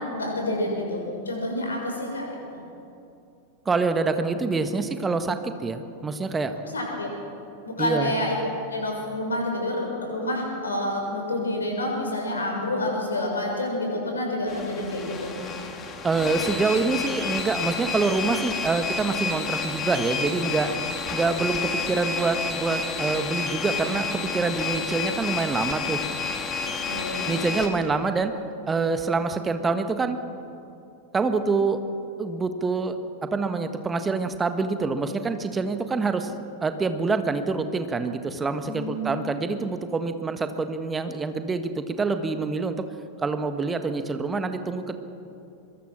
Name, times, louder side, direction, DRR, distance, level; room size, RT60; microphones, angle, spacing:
voice 1, 0.0-2.2 6.6-7.1 7.6-8.3 8.7-15.4 26.9-27.3 38.7-39.1, left 1 dB, 75° left, 1 dB, 6.5 m, -28 dB
voice 2, 3.6-6.5 7.8-8.2 16.0-20.7 21.1-26.0 27.2-28.3 28.7-30.2 31.1-31.8 32.2-36.3 36.6-42.9 43.2-45.0, right 4 dB, 15° right, 9 dB, 1.6 m, -26 dB
sound 1, 14.5-27.7, left 5 dB, 25° left, 3.0 m, -30 dB
24.0 x 22.0 x 6.4 m, 2.7 s
figure-of-eight pair, 90°, 0 cm